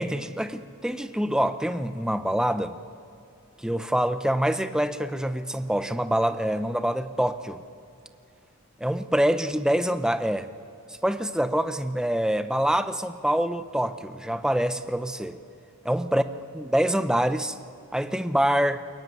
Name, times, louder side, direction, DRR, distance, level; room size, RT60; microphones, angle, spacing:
voice 1, 0.0-2.8 3.6-7.6 8.8-10.5 10.9-15.4 15.8-16.2 16.5-17.6 17.9-18.8, equal, 5° right, 10 dB, 0.7 m, -25 dB
22.5 x 21.5 x 9.4 m, 2.4 s
head